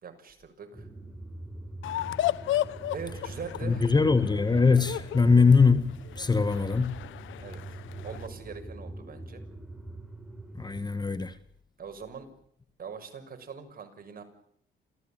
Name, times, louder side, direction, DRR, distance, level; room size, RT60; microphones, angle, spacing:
voice 1, 0.0-0.9 2.9-4.0 7.4-7.6 8.0-9.4 11.8-12.3 12.8-14.2, right 5 dB, 45° right, 6.4 m, -42 dB
sound 1, 0.7-10.9, right 2 dB, 5° right, 4.5 m, -43 dB
sound 2, 1.8-8.3, left 13 dB, 80° left, 1.1 m, -34 dB
voice 2, 3.6-7.0 10.6-11.3, left 4 dB, 20° left, 1.8 m, -22 dB
28.0 x 16.0 x 9.0 m
cardioid pair, 90°, 20 cm